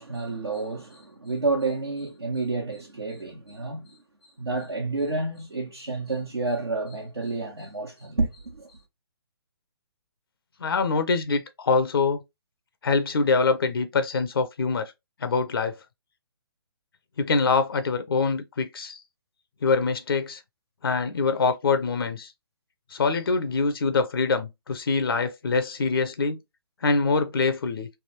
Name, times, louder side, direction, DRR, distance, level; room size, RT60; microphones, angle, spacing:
voice 1, 0.0-8.8, right 3 dB, 80° right, 1.1 m, -30 dB
voice 2, 10.6-12.2 12.8-14.9 15.2-15.8 17.2-19.0 19.6-20.4 20.8-22.3 22.9-26.4 26.8-27.9, left 4 dB, 65° left, 0.5 m, -24 dB
3.4 x 2.3 x 2.8 m
figure-of-eight pair, 135°, 13 cm